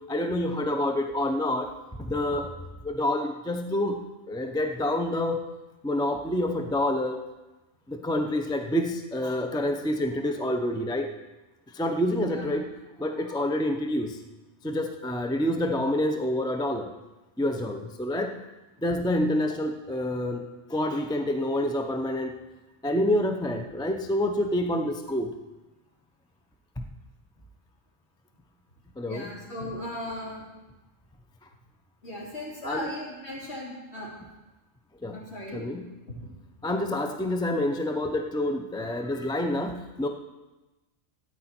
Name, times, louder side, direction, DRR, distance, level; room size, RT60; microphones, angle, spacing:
voice 1, 0.1-1.7 2.0-2.5 2.8-5.5 5.8-7.2 7.9-11.1 11.7-12.7 13.0-14.2 14.6-16.9 17.4-18.4 18.8-22.3 22.8-25.3 29.0-29.3 32.6-32.9 35.0-35.2 35.5-35.8 36.6-40.1, left 1 dB, 5° left, 4 dB, 0.4 m, -27 dB
voice 2, 29.0-30.4 32.0-34.1 35.1-35.7, left 1 dB, 55° left, -5 dB, 3.4 m, -37 dB
13.0 x 9.2 x 4.4 m, 1.1 s
omnidirectional pair, 1.3 m